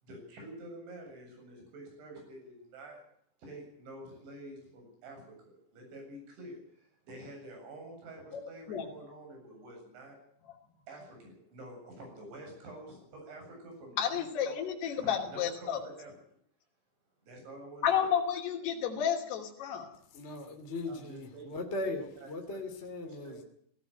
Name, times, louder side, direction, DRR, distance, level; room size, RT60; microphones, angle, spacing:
voice 1, 0.0-3.0 3.4-10.2 10.9-14.6 15.0-16.1 17.2-17.9 20.9-21.5 21.8-21.9 22.2-22.6 23.1-23.5, right 1 dB, 80° right, 10.0 m, -48 dB
voice 2, 14.0-15.8 17.8-19.9, left 8 dB, 65° left, 4.6 m, -31 dB
voice 3, 20.1-23.4, left 2 dB, 20° left, 1.8 m, -38 dB
17.5 x 17.0 x 9.0 m
omnidirectional pair, 5.2 m